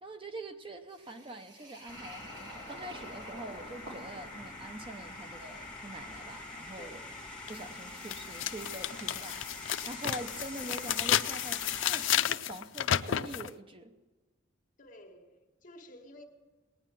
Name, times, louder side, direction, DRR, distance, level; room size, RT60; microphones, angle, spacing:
voice 1, 0.0-7.0 7.5-13.9, right 1 dB, 25° right, 0.8 m, -44 dB
sound 1, 0.9-10.7, right 1 dB, 65° right, 4.3 m, -53 dB
sound 2, 1.9-12.1, left 2 dB, 5° left, 2.2 m, -45 dB
voice 2, 6.8-7.2 14.8-16.3, left 1 dB, 40° left, 1.9 m, -52 dB
sound 3, 7.5-7.6 8.1-13.5, left 10 dB, 75° left, 0.5 m, -31 dB
19.5 x 9.5 x 7.6 m
head